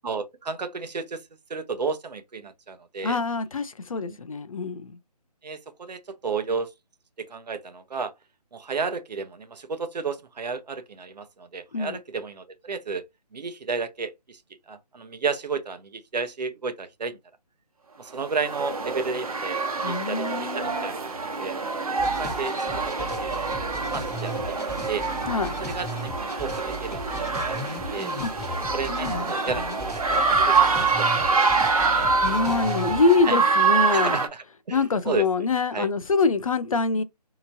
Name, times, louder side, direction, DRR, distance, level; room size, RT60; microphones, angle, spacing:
voice 1, 0.0-1.2 1.5-3.2 4.0-4.2 5.4-6.7 7.3-8.1 8.5-13.0 13.3-14.4 14.7-17.2 18.0-21.1 21.4-21.6 22.2-22.7 23.2-23.5 23.9-25.0 25.7-27.6 27.9-28.1 28.7-31.5 31.9-32.0 32.3-32.6 33.3-33.4 33.9-35.3 35.7-35.9, right 4 dB, 85° right, 0.7 m, -32 dB
voice 2, 3.0-5.0 11.7-12.0 19.8-20.9 25.3-25.6 28.2-28.3 28.9-29.7 32.2-34.2 34.7-37.0, left 4 dB, 55° left, 0.5 m, -25 dB
sound 1, 18.2-34.3, right 4 dB, 60° right, 0.9 m, -25 dB
sound 2, 22.0-33.2, equal, 5° left, 0.6 m, -37 dB
4.4 x 2.8 x 2.6 m
hypercardioid pair, 175°, 21 cm